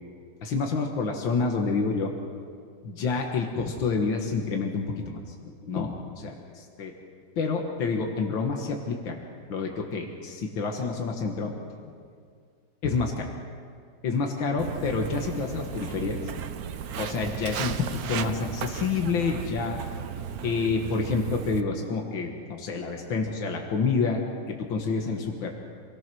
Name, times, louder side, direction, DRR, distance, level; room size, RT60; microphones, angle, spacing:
voice 1, 0.4-2.1 2.8-5.2 5.6-6.9 7.4-9.2 9.5-11.5 12.8-13.3 14.0-16.2 17.0-19.8 20.4-24.2 24.5-25.6, left 4 dB, 85° left, 2 dB, 2.3 m, -28 dB
Walk footsteps, 14.6-21.6, right 8 dB, 60° right, 1.2 m, -35 dB
26.5 x 18.5 x 6.2 m, 2.1 s
omnidirectional pair, 2.1 m